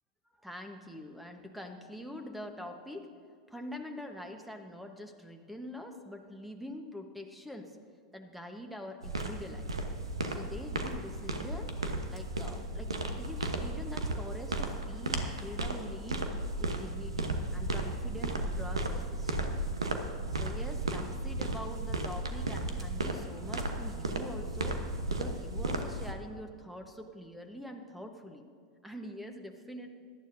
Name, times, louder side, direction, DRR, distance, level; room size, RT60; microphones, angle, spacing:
voice 1, 0.4-3.1 3.5-7.8 8.1-9.7 10.3-11.8 12.1-16.3 16.6-19.5 20.3-24.8 25.1-28.4 28.8-29.9, left 1 dB, ahead, 5 dB, 1.1 m, -44 dB
sound 1, 9.0-26.1, right 2 dB, 85° right, 1.0 m, -35 dB
18.0 x 12.0 x 2.7 m, 2.1 s
hypercardioid pair, 95°, 3 cm